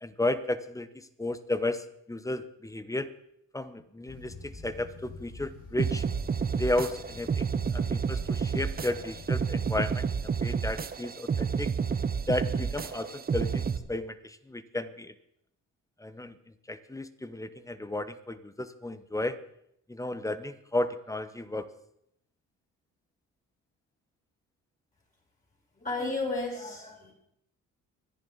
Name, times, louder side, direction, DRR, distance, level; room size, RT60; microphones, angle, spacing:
voice 1, 0.0-3.1 3.5-6.1 6.5-7.5 7.7-10.0 10.4-11.7 12.3-13.6 13.9-15.1 16.0-16.3 16.7-19.4 19.9-21.7, left 1 dB, 10° left, 12 dB, 1.0 m, -33 dB
sound 1, 4.1-10.2, left 1 dB, 75° left, 4.8 m, -46 dB
sound 2, 5.8-13.8, right 6 dB, 30° right, 0.8 m, -30 dB
voice 2, 25.8-27.1, left 2 dB, 25° left, -3 dB, 6.9 m, -33 dB
25.0 x 10.5 x 4.0 m, 0.75 s
cardioid pair, 90°, 30 cm